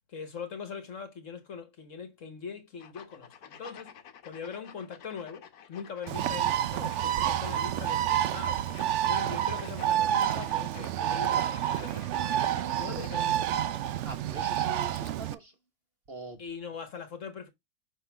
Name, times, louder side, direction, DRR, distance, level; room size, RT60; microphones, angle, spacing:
voice 1, 0.1-3.9 4.2-8.6 9.0-13.8 16.4-17.5, left 6 dB, 50° left, 1.3 m, -42 dB
sound 1, 2.8-13.6, left 8 dB, 65° left, 1.3 m, -51 dB
Bird, 6.1-15.3, right 11 dB, 80° right, 0.6 m, -29 dB
voice 2, 13.8-15.6 16.1-16.4, right 2 dB, 40° right, 1.0 m, -43 dB
5.9 x 5.5 x 3.3 m
omnidirectional pair, 1.8 m